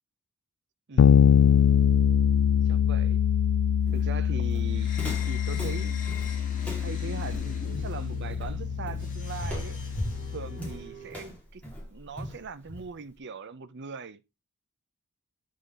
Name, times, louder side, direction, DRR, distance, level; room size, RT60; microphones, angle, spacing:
voice 1, 0.9-1.2 2.6-3.2 3.9-4.9 5.3-6.1 6.8-9.8 10.3-11.6 11.9-14.2, right 4 dB, 50° right, 0.7 m, -40 dB
Bass guitar, 1.0-10.6, left 8 dB, 75° left, 0.3 m, -24 dB
Walk footsteps, 3.9-13.1, left 1 dB, 5° left, 2.5 m, -39 dB
sound 1, 4.7-11.3, equal, 35° left, 1.9 m, -43 dB
8.4 x 3.8 x 3.9 m
head